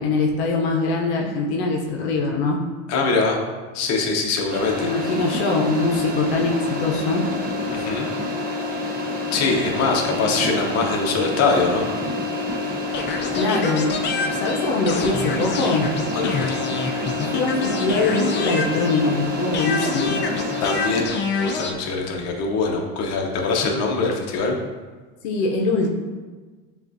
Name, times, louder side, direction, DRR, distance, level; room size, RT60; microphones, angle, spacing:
voice 1, 0.0-2.6 4.8-7.2 10.1-10.3 13.3-13.9 14.3-15.8 17.2-20.2 25.2-25.9, left 3 dB, 90° left, 0 dB, 0.7 m, -23 dB
voice 2, 2.9-3.4 3.7-4.9 7.7-8.1 9.3-11.9 16.1-16.6 20.6-24.6, left 4 dB, 50° left, 1 dB, 0.8 m, -23 dB
sound 1, 4.5-21.0, left 2 dB, 30° right, 0.8 m, -27 dB
sound 2, 12.9-19.2 19.5-21.7, left 4 dB, 35° left, 0.5 m, -27 dB
6.9 x 2.4 x 2.6 m, 1.4 s
supercardioid pair, 110°, 32 cm